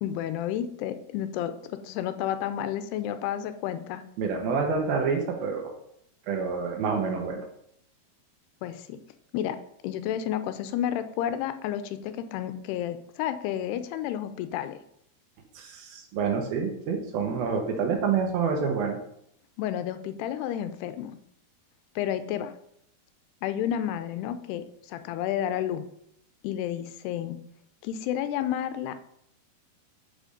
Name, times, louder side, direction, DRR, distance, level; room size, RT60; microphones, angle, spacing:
voice 1, 0.0-4.0 8.6-9.0 9.3-9.6 9.8-14.8 19.6-21.1 22.0-22.5 23.4-25.8 26.4-27.4 27.8-29.0, left 10 dB, 90° left, 10 dB, 2.7 m, -31 dB
voice 2, 4.2-5.7 6.3-7.5 15.6-19.0, right 5 dB, 70° right, 3 dB, 2.8 m, -27 dB
7.1 x 5.0 x 5.1 m, 0.72 s
omnidirectional pair, 4.6 m